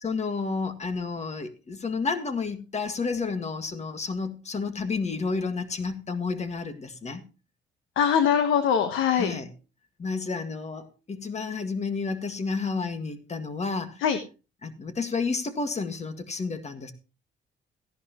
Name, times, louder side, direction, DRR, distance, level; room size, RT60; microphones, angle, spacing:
voice 1, 0.0-7.2 9.1-9.5 10.0-14.0 14.6-16.9, left 4 dB, 35° left, 1.8 m, -31 dB
voice 2, 8.0-9.3 14.0-14.2, left 8 dB, 90° left, 1.2 m, -22 dB
15.5 x 11.0 x 3.0 m
cardioid pair, 90°, 20 cm